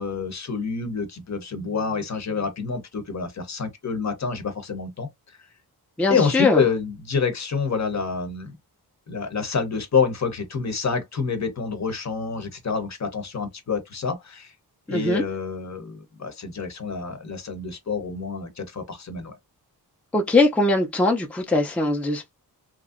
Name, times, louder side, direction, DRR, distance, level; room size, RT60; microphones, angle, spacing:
voice 1, 0.0-5.1 6.1-8.6 9.1-14.5 14.9-19.4, left 5 dB, 45° left, 0.9 m, -27 dB
voice 2, 6.0-6.6 14.9-15.2 20.1-22.3, left 2 dB, 5° left, 0.5 m, -21 dB
3.0 x 2.6 x 2.5 m
wide cardioid pair, 125°, 39 cm